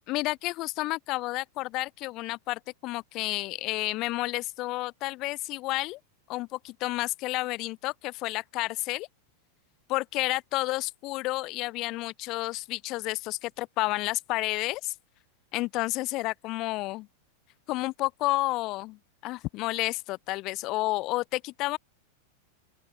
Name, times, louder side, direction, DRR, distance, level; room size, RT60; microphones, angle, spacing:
voice 1, 0.1-6.0 6.3-9.1 9.9-14.9 15.5-17.1 17.7-21.8, left 20 dB, 40° left, 0.7 m, -31 dB
open air
figure-of-eight pair, 90°, 0 cm